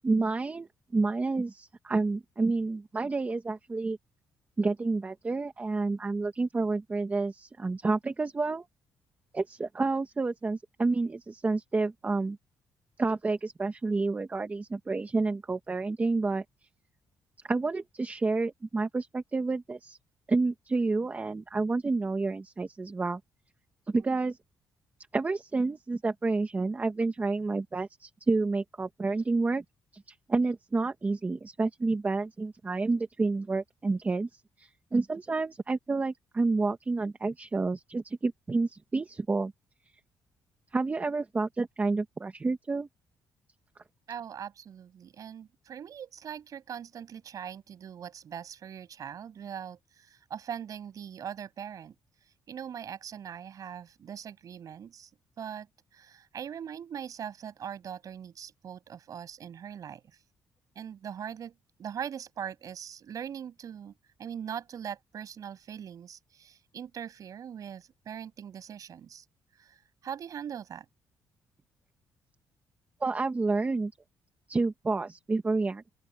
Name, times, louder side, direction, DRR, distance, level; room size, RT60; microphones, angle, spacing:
voice 1, 0.0-4.0 4.6-8.7 9.3-12.4 13.0-16.4 17.5-20.0 20.3-23.2 23.9-24.4 25.1-29.6 29.9-34.3 34.6-39.5 40.7-42.9 73.0-73.9 74.5-75.9, right 3 dB, 20° right, 1.7 m, -29 dB
voice 2, 44.1-51.9 52.2-55.1 55.4-55.7 55.9-60.0 60.7-61.5 61.8-63.9 64.2-69.2 69.6-70.8, right 8 dB, 55° right, 8.0 m, -41 dB
open air
cardioid pair, 120°, 7 cm